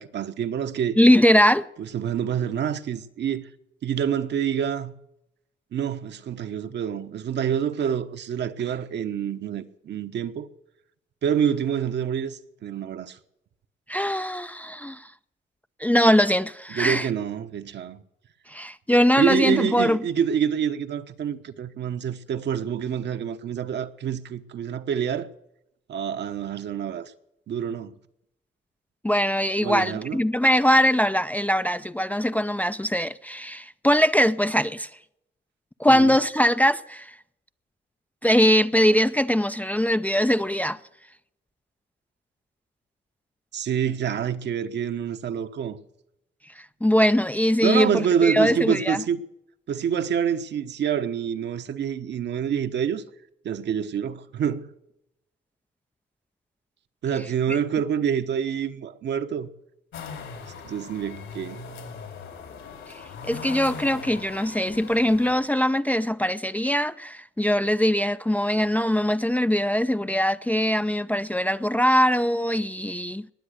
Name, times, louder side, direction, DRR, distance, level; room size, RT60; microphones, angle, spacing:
voice 1, 0.0-1.0 1.8-3.5 3.8-4.9 5.7-10.5 11.2-13.2 16.7-18.0 19.2-25.3 25.9-27.1 27.5-27.9 29.6-30.2 35.9-36.2 43.5-45.8 47.6-49.2 49.7-53.0 53.4-54.7 57.0-59.5 60.6-61.6, right 8 dB, 60° right, 1.1 m, -27 dB
voice 2, 1.0-1.7 13.9-15.1 15.8-17.1 18.5-20.0 29.0-34.9 35.8-37.1 38.2-40.8 46.8-47.9 48.2-49.0 63.2-73.3, equal, 10° left, 0.5 m, -21 dB
sound 1, 59.9-65.3, left 5 dB, 80° left, 4.2 m, -40 dB
20.0 x 7.9 x 6.6 m
cardioid pair, 90°, 20 cm